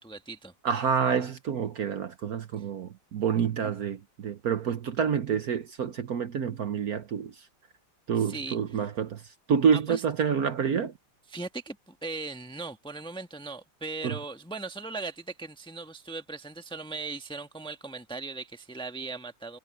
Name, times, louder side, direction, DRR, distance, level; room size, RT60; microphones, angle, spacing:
voice 1, 0.0-0.5 8.2-8.9 9.7-10.0 11.3-19.6, right 3 dB, 5° left, 1.0 m, -38 dB
voice 2, 0.6-7.3 8.1-9.2 9.5-10.9 14.0-14.2, right 7 dB, 60° right, 1.3 m, -28 dB
omnidirectional pair, 2.1 m